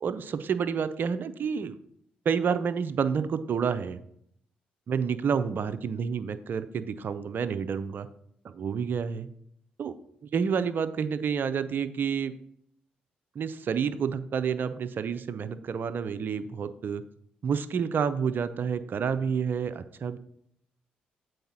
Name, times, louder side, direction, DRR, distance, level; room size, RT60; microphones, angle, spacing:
voice 1, 0.0-1.8 2.2-4.0 4.9-8.1 8.4-9.3 9.8-9.9 10.3-12.3 13.3-17.0 17.4-20.2, right 6 dB, 55° right, 12 dB, 0.6 m, -29 dB
7.9 x 4.7 x 5.6 m, 0.69 s
hypercardioid pair, 45°, 4 cm